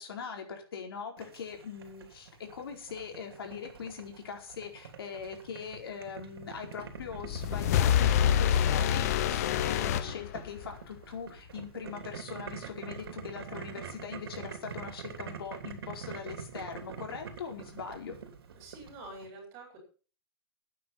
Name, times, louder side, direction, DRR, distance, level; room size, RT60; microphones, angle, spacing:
voice 1, 0.0-18.2, left 6 dB, 75° left, 2 dB, 4.6 m, -41 dB
Boiling, 1.2-19.3, right 6 dB, 75° right, 3.2 m, -45 dB
sound 1, 7.0-10.8, left 10 dB, 40° left, 1.0 m, -26 dB
voice 2, 18.5-19.8, right 2 dB, 25° right, 3 dB, 6.0 m, -47 dB
13.0 x 9.3 x 5.8 m, 0.37 s
hypercardioid pair, 165°, 13 cm